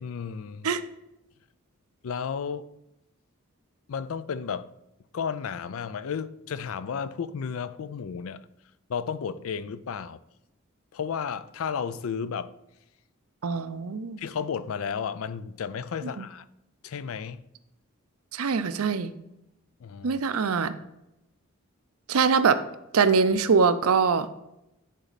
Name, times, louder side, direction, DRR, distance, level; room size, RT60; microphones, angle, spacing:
voice 1, 0.0-0.7 2.0-2.7 3.9-4.7 5.1-8.4 8.9-10.2 10.9-12.5 14.2-16.5 16.8-17.4 19.8-20.2, left 6 dB, 70° left, 0.4 m, -33 dB
voice 2, 13.4-14.2 16.2-16.3 18.3-19.1 20.0-20.7 22.1-22.6 22.9-24.3, right 5 dB, 80° right, 0.5 m, -23 dB
10.0 x 4.1 x 4.0 m
head